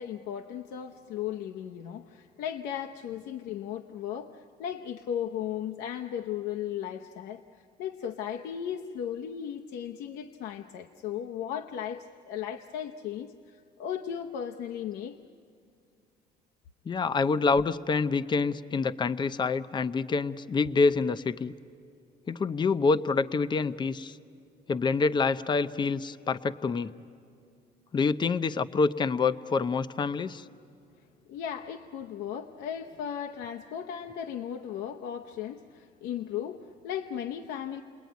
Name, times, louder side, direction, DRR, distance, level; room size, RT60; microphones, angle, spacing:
voice 1, 0.0-7.4 7.8-15.2 31.3-37.8, left 9 dB, 85° left, 0.8 m, -36 dB
voice 2, 16.9-21.5 22.3-24.2 24.7-26.9 27.9-30.4, left 4 dB, 25° left, 0.7 m, -27 dB
30.0 x 21.0 x 9.3 m
cardioid pair, 110°, 17 cm